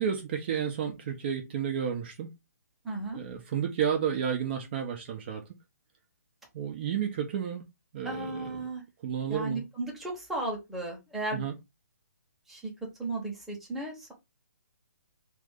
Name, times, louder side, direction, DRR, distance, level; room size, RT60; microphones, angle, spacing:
voice 1, 0.0-2.3 3.1-5.4 6.5-7.6 7.9-8.7 9.0-9.6 11.3-11.5, right 8 dB, 40° right, 0.6 m, -31 dB
voice 2, 2.8-3.2 8.0-8.8 9.3-11.4 12.5-12.6 13.0-14.1, right 2 dB, ahead, 0.9 m, -35 dB
2.6 x 2.5 x 3.5 m
hypercardioid pair, 145°, 9 cm